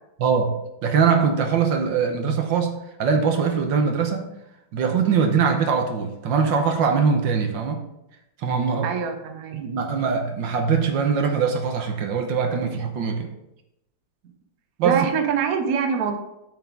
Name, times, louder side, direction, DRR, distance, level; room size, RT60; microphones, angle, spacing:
voice 1, 0.2-0.5 0.8-4.3 4.7-7.8 8.4-8.9 9.5-13.3 14.8-15.1, right 6 dB, 75° right, 5 dB, 1.6 m, -22 dB
voice 2, 8.8-9.6 14.8-16.2, right 6 dB, 55° right, 6 dB, 1.1 m, -24 dB
9.1 x 5.9 x 3.7 m, 0.87 s
omnidirectional pair, 2.1 m